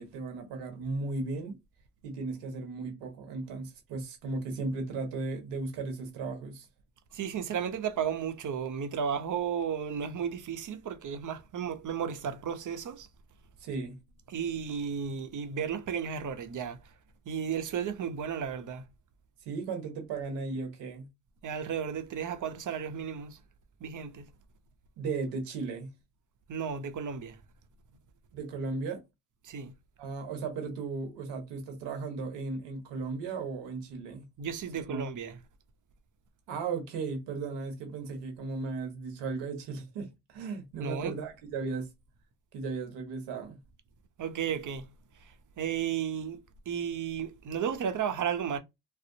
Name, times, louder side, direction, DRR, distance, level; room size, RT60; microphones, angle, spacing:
voice 1, 0.0-1.6 2.0-6.7 13.6-14.0 19.5-21.1 25.0-25.9 28.3-29.0 30.0-34.2 34.8-35.0 36.5-41.9 42.5-43.6, right 4 dB, 85° right, 0.9 m, -36 dB
voice 2, 7.1-13.1 14.3-16.8 17.3-18.8 21.4-23.4 23.8-24.2 26.5-27.4 29.4-29.7 34.4-35.4 40.8-41.2 44.2-44.9 45.6-46.4 46.7-48.6, right 7 dB, 45° right, 0.7 m, -33 dB
2.6 x 2.0 x 2.6 m
supercardioid pair, 55°, 41 cm